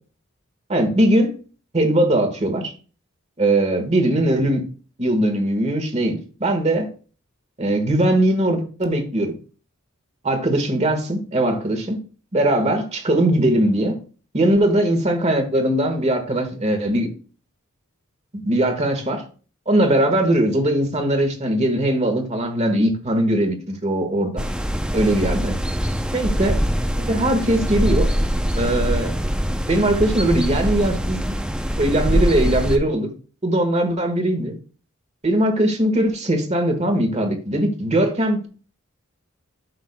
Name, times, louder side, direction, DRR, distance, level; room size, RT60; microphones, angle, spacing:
voice 1, 0.7-1.4 1.7-2.7 3.4-4.6 5.0-6.9 7.6-9.3 10.2-12.0 12.3-14.0 14.3-17.1 18.3-19.3 19.7-24.4 24.9-25.6 26.1-26.6 27.0-28.1 28.6-29.1 29.7-31.3 31.8-33.1 33.4-34.5 35.2-38.5, right 1 dB, 30° right, 6 dB, 1.5 m, -20 dB
sound 1, 24.4-32.8, equal, 5° right, 0.5 m, -23 dB
12.5 x 6.2 x 2.2 m, 0.37 s
head